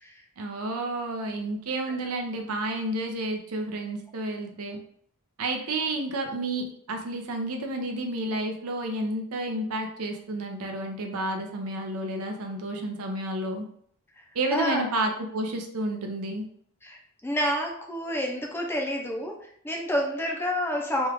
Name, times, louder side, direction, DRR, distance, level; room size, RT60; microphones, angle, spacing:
voice 1, 0.4-4.8 5.4-13.6 14.3-16.4, right 2 dB, 75° right, 3 dB, 0.6 m, -31 dB
voice 2, 14.5-14.9 16.8-21.1, equal, 10° left, 0 dB, 0.5 m, -29 dB
3.0 x 2.4 x 3.4 m, 0.64 s
head